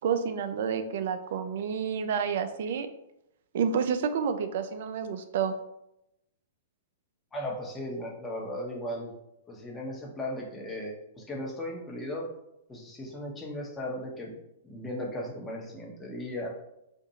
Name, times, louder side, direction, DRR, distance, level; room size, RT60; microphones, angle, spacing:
voice 1, 0.0-2.9 3.5-5.5, right 7 dB, 60° right, 9 dB, 0.3 m, -29 dB
voice 2, 7.3-9.1 9.5-12.3 12.7-14.3 14.6-16.5, left 1 dB, 15° left, -2 dB, 0.9 m, -36 dB
2.6 x 2.5 x 4.1 m, 0.85 s
figure-of-eight pair, 110°, 0 cm